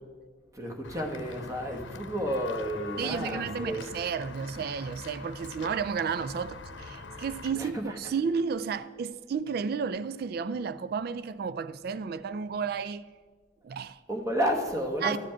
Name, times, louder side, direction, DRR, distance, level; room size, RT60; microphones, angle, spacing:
voice 1, 0.5-3.8 7.5-8.0 14.1-15.2, equal, 15° right, 1.2 m, -31 dB
Walk footsteps / Bell, 0.8-7.5, left 3 dB, 75° left, 0.8 m, -43 dB
voice 2, 3.0-13.1 13.6-14.0 15.0-15.2, right 6 dB, 50° right, 0.3 m, -32 dB
12.5 x 5.1 x 8.7 m
head